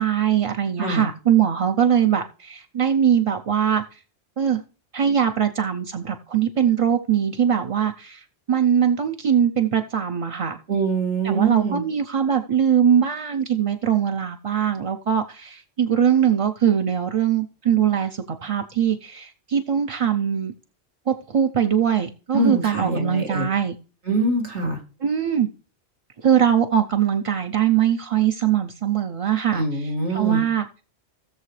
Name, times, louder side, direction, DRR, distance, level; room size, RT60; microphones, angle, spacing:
voice 1, 0.0-4.0 4.4-4.6 4.9-10.6 11.2-20.5 21.1-23.8 25.0-25.5 26.2-30.7, right 8 dB, 40° right, 0.5 m, -21 dB
voice 2, 10.7-11.8 22.3-23.5 24.1-24.8 29.5-30.4, right 2 dB, 90° right, 2.6 m, -24 dB
17.0 x 6.7 x 3.2 m
omnidirectional pair, 1.1 m